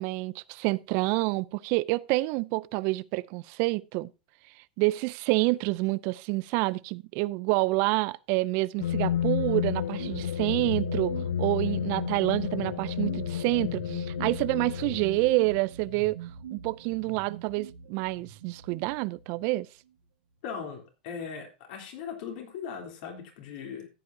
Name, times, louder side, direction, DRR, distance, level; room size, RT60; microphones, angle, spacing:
voice 1, 0.0-4.1 4.8-11.1 11.4-16.2 16.5-19.7, right 22 dB, 50° right, 0.4 m, -28 dB
sound 1, 8.8-15.3, left 10 dB, 80° left, 0.5 m, -31 dB
sound 2, 10.0-19.6, right 7 dB, 80° right, 1.8 m, -43 dB
voice 2, 20.4-23.9, left 6 dB, 60° left, 3.3 m, -39 dB
14.0 x 8.5 x 2.7 m
hypercardioid pair, 110°, 5 cm